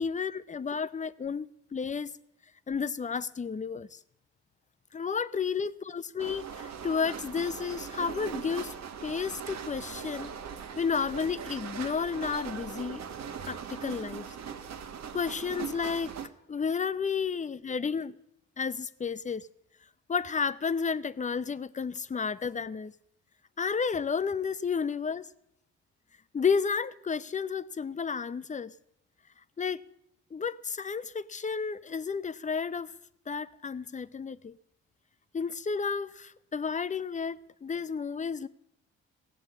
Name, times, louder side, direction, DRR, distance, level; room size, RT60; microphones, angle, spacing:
voice 1, 0.0-2.2 2.7-4.0 4.9-8.8 9.0-10.3 10.8-13.0 13.4-14.4 15.1-16.1 16.5-18.1 18.6-19.5 20.1-22.9 23.6-25.3 26.3-28.7 29.6-29.8 30.3-32.9 33.3-34.5 35.3-38.5, left 5 dB, 25° left, 0.6 m, -32 dB
sound 1, 6.2-16.3, right 7 dB, 60° right, 1.3 m, -40 dB
16.5 x 7.9 x 8.5 m
cardioid pair, 90°, 30 cm